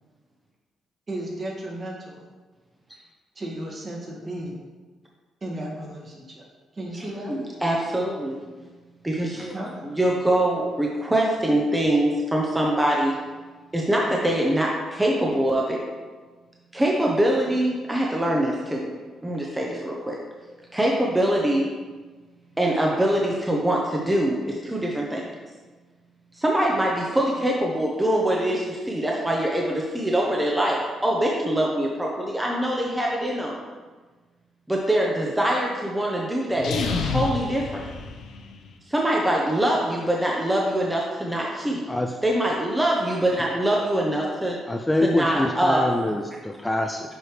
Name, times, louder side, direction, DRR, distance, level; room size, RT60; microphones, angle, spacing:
voice 1, 1.1-2.2 3.4-4.5 5.4-6.4 6.7-7.4 9.5-9.9, right 1 dB, 40° right, -3 dB, 1.9 m, -34 dB
voice 2, 7.3-8.4 9.0-9.5 9.8-13.2 13.7-15.8 16.7-18.9 19.2-20.2 20.7-21.7 22.6-25.3 26.4-33.5 34.7-37.8 38.9-41.8 42.2-44.6 45.0-45.9, right 1 dB, 10° right, -2 dB, 0.9 m, -23 dB
sound 1, 36.5-38.7, left 4 dB, 75° left, 0.7 m, -29 dB
voice 3, 44.7-47.0, left 1 dB, 10° left, 3 dB, 0.4 m, -25 dB
7.6 x 4.8 x 3.3 m, 1.4 s
cardioid pair, 90°, 0 cm